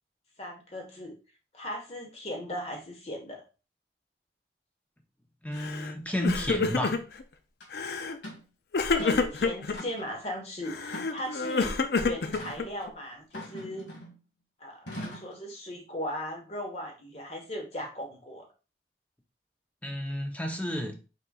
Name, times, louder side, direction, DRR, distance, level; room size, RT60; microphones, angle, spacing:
voice 1, 0.4-1.2 1.5-3.4 8.9-13.9 14.6-18.5, left 1 dB, 35° left, 2 dB, 1.3 m, -38 dB
voice 2, 5.4-7.0 19.8-21.0, equal, 10° left, 3 dB, 0.7 m, -31 dB
Crying sobbing, 5.6-5.9 6.2-7.2 7.7-8.2 8.7-9.8 10.7-12.9, left 4 dB, 60° left, 0.5 m, -28 dB
sound 1, 7.6-7.7 8.2-8.5 8.9-9.3 9.7-10.2 10.9-11.5 12.3-12.6 13.3-14.2 14.9-15.4, equal, 85° left, 2.0 m, -42 dB
5.0 x 4.2 x 2.4 m, 0.32 s
head